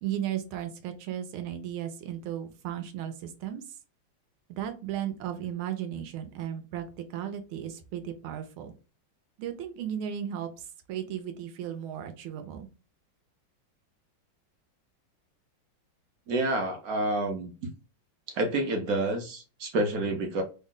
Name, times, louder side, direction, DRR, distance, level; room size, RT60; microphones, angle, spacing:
voice 1, 0.0-3.8 4.5-8.7 9.4-12.7, right 10 dB, 90° right, 7 dB, 1.5 m, -35 dB
voice 2, 16.3-17.5 18.3-20.4, right 2 dB, 65° right, 4 dB, 0.9 m, -28 dB
3.5 x 2.1 x 3.7 m, 0.33 s
omnidirectional pair, 2.2 m